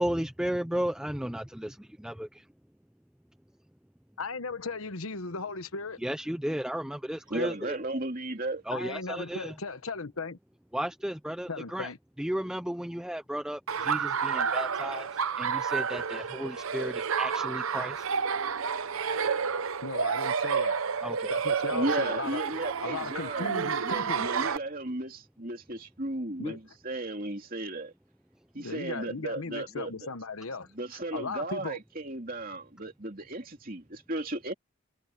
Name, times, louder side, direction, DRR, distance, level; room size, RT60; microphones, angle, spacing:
voice 1, 0.0-2.5 6.0-7.8 8.6-9.5 10.7-11.9 12.2-18.1 21.0-21.3, equal, 5° right, 0.4 m, -34 dB
voice 2, 4.2-6.0 8.7-10.4 11.5-12.0 19.8-20.8 21.3-22.4 22.8-24.3 26.4-26.6 28.6-31.8, left 4 dB, 80° left, 1.2 m, -37 dB
voice 3, 7.3-8.6 21.7-26.6 26.8-27.9 28.5-29.9 30.8-34.5, right 2 dB, 40° right, 3.1 m, -35 dB
Laughter, 13.7-24.6, right 6 dB, 80° right, 0.8 m, -30 dB
head